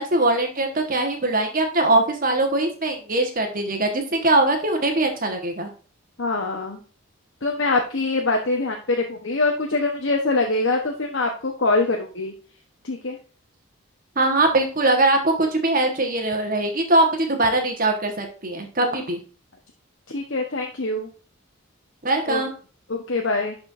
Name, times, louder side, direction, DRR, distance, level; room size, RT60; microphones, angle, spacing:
voice 1, 0.0-5.7 14.2-19.2 22.0-22.5, right 2 dB, 40° right, 4 dB, 1.4 m, -21 dB
voice 2, 6.2-6.8 7.4-12.3 12.8-13.2 20.1-21.1 22.3-22.4 22.9-23.6, left 3 dB, 60° left, 2 dB, 1.0 m, -24 dB
11.5 x 4.5 x 2.6 m, 0.39 s
head